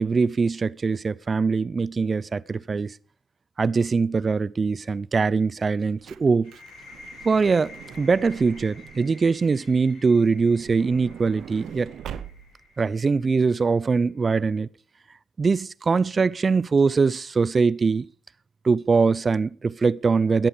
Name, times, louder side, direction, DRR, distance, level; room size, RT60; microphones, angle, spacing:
voice 1, 0.0-3.0 3.6-6.5 7.2-11.9 12.8-14.7 15.4-18.1 18.6-20.5, right 4 dB, 45° right, 0.6 m, -22 dB
Truck / Door, 5.6-9.2 10.2-12.7 13.4-13.5 13.7-13.9, right 9 dB, 75° right, 0.8 m, -42 dB
sound 1, 6.4-14.0, left 3 dB, 85° left, 6.0 m, -49 dB
13.5 x 11.0 x 5.1 m
supercardioid pair, 50°, 0 cm